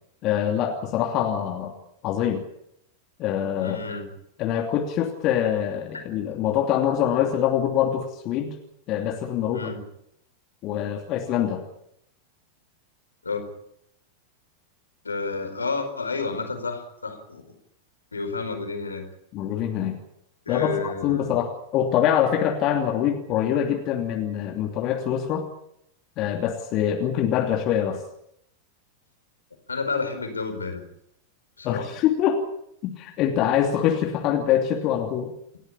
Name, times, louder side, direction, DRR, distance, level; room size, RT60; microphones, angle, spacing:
voice 1, 0.2-1.7 2.0-2.4 3.2-3.8 4.4-8.5 8.9-9.7 10.6-11.6 19.3-20.0 20.5-25.5 26.2-28.0 31.6-32.4 32.8-35.3, left 10 dB, 40° left, 2 dB, 2.9 m, -24 dB
voice 2, 3.6-4.1 9.5-9.8 13.2-13.5 15.0-17.4 18.1-19.0 20.5-21.4 29.7-30.8 31.6-31.9, left 4 dB, 75° left, 7 dB, 4.6 m, -30 dB
28.5 x 13.5 x 8.8 m, 0.75 s
figure-of-eight pair, 90°, 0 cm